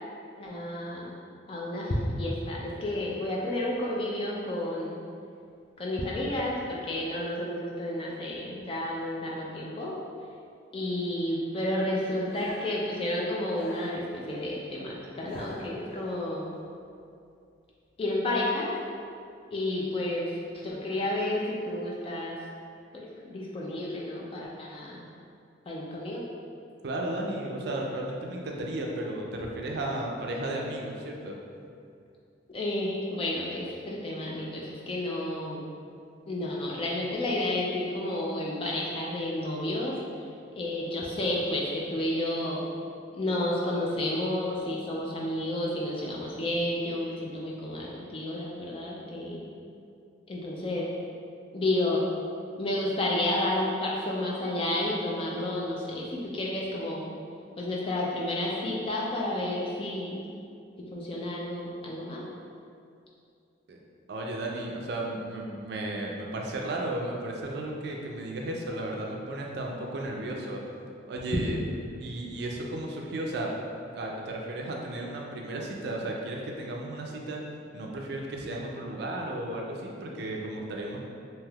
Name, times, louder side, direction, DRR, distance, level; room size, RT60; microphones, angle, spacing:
voice 1, 0.4-1.1 1.5-5.0 5.8-10.0 10.7-16.5 18.0-18.7 19.5-22.4 22.9-25.0 25.7-26.2 32.5-35.6 36.3-40.0 40.5-42.6 43.1-49.4 50.3-50.9 51.5-52.0 52.6-57.1 57.6-60.3 60.9-62.2, left 1 dB, 30° left, -4 dB, 0.3 m, -31 dB
sound 1, 12.3-12.8 13.5-14.5 15.0-16.1, left 1 dB, 70° left, 0.7 m, -44 dB
voice 2, 26.8-31.4 63.7-63.8 64.1-70.6 71.0-71.6 72.0-73.5 73.9-77.5 77.7-81.0, right 1 dB, 60° right, 0 dB, 0.4 m, -34 dB
3.3 x 2.7 x 2.3 m, 2.4 s
head